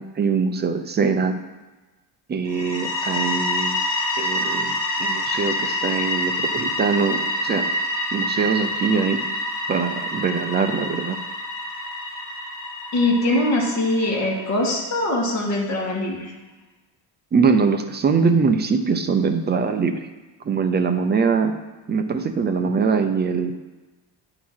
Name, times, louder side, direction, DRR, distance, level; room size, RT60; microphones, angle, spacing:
voice 1, 0.0-1.4 2.3-3.8 4.2-7.7 8.1-9.2 9.7-11.2 17.3-20.1 20.4-21.5 21.9-23.5, right 5 dB, 25° right, 7 dB, 0.4 m, -22 dB
sound 1, 2.5-15.2, left 1 dB, 70° left, 1.9 m, -27 dB
voice 2, 12.9-16.3, left 1 dB, 35° left, -3 dB, 2.1 m, -22 dB
9.5 x 3.9 x 6.1 m, 1.2 s
cardioid pair, 165°, 45 cm